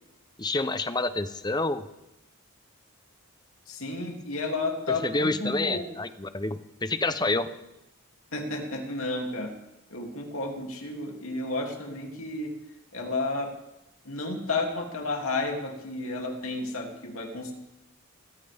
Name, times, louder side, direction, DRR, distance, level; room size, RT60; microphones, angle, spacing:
voice 1, 0.4-1.8 5.0-7.5, left 2 dB, 20° left, 11 dB, 0.7 m, -28 dB
voice 2, 3.7-5.9 8.3-9.5 9.9-12.5 12.9-13.5 14.0-17.5, left 2 dB, 75° left, 1 dB, 2.7 m, -32 dB
21.0 x 15.0 x 3.5 m, 0.91 s
head